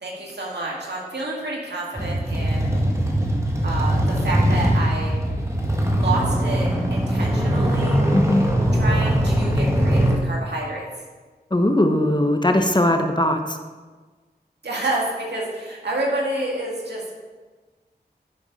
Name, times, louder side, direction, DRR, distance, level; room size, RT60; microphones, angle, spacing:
voice 1, 0.0-2.7 3.6-5.1 5.9-8.0 8.7-10.9 14.6-17.2, right 2 dB, 85° right, -3 dB, 2.1 m, -29 dB
sound 1, 1.9-10.1, equal, 15° right, 1.8 m, -21 dB
voice 2, 11.5-13.6, left 1 dB, 25° left, 6 dB, 1.0 m, -19 dB
10.0 x 7.1 x 4.2 m, 1.4 s
wide cardioid pair, 45°, 17 cm